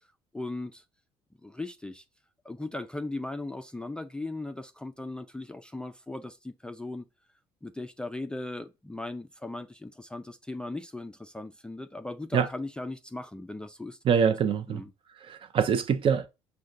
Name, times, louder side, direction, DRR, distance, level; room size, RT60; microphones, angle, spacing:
voice 1, 0.3-0.8 1.4-2.0 2.4-7.1 7.6-14.0 14.7-14.9, left 2 dB, 5° left, 0.3 m, -38 dB
voice 2, 14.0-14.8 15.2-16.3, right 7 dB, 45° right, 0.6 m, -24 dB
6.2 x 2.2 x 2.5 m
hypercardioid pair, 75°, 13 cm